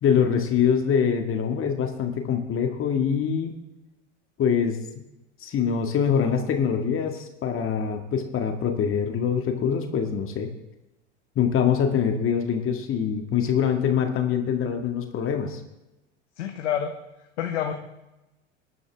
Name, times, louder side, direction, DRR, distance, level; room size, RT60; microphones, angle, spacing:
voice 1, 0.0-3.6 4.4-4.8 5.4-10.5 11.4-15.6, left 7 dB, 35° left, 5 dB, 1.9 m, -24 dB
voice 2, 16.4-16.9 17.4-17.7, left 9 dB, 70° left, 4 dB, 1.4 m, -27 dB
21.5 x 11.0 x 3.5 m, 0.97 s
hypercardioid pair, 85°, 36 cm